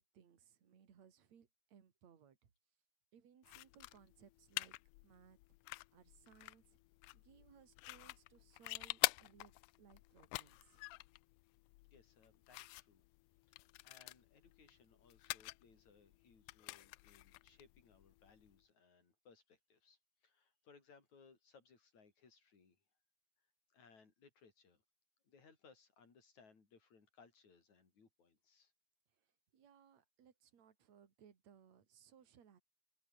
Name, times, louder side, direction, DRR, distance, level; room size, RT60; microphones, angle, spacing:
voice 1, 0.0-2.5 3.1-4.8 5.0-5.4 5.9-6.8 7.1-9.5 9.8-10.9 29.1-32.6, right 8 dB, 50° right, 3.8 m, -65 dB
sound 1, 3.4-18.6, left 22 dB, 85° left, 1.8 m, -46 dB
voice 2, 11.9-13.0 13.5-22.8 23.7-24.8 25.2-28.7, left 5 dB, 50° left, 6.1 m, -66 dB
omnidirectional pair, 4.1 m